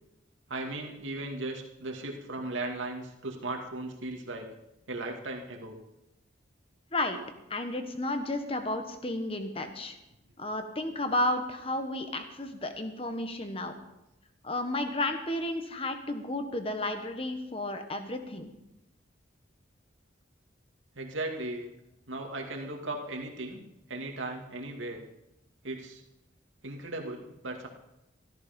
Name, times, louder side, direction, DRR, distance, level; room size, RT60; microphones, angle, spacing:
voice 1, 0.5-4.5 4.9-5.8 21.0-21.7 22.1-23.6 23.9-25.0 25.6-26.0 26.6-27.7, right 2 dB, 85° right, 1 dB, 2.3 m, -37 dB
voice 2, 7.5-10.0 10.4-13.7 14.4-18.5, left 1 dB, 30° left, 7 dB, 1.3 m, -32 dB
14.0 x 13.5 x 5.3 m, 0.90 s
head